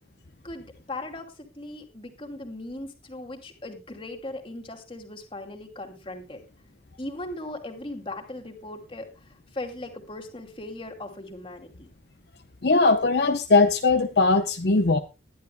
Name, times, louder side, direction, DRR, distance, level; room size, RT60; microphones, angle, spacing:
voice 1, 0.4-6.4 7.0-9.1 9.5-11.9, left 2 dB, 30° left, 4 dB, 2.6 m, -38 dB
voice 2, 12.6-15.0, left 3 dB, 60° left, 6 dB, 0.8 m, -20 dB
20.5 x 11.5 x 2.3 m, 0.27 s
head